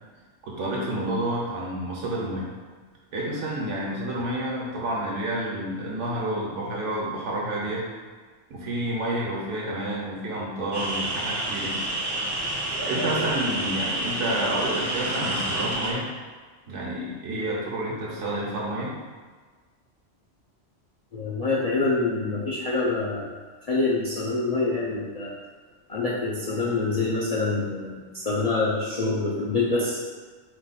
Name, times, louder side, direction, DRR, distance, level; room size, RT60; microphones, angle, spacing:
voice 1, 0.4-2.5 3.1-7.8 8.5-11.8 12.8-16.1 16.7-18.9, right 1 dB, 75° right, -4 dB, 1.3 m, -29 dB
sound 1, 10.7-15.9, right 1 dB, 25° right, 0.6 m, -29 dB
voice 2, 21.1-23.3 23.7-25.3 25.9-30.0, left 3 dB, 50° left, -6 dB, 0.4 m, -26 dB
4.4 x 2.3 x 4.1 m, 1.5 s
omnidirectional pair, 1.2 m